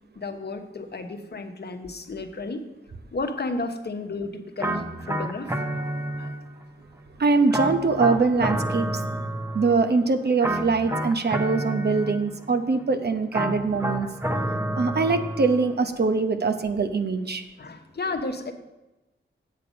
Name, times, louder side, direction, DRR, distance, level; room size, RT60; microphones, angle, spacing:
voice 1, 0.1-2.6 3.1-5.9 6.2-6.4 17.6-18.5, left 3 dB, 55° left, 6 dB, 1.0 m, -33 dB
sound 1, 4.6-6.7 7.5-9.9 10.4-12.5 13.3-15.7, right 1 dB, 15° right, 0.9 m, -29 dB
voice 2, 7.2-8.9 9.5-14.1 14.7-17.4, right 4 dB, 55° right, 8 dB, 0.9 m, -23 dB
8.5 x 6.7 x 5.2 m, 1.0 s
cardioid pair, 50°, 21 cm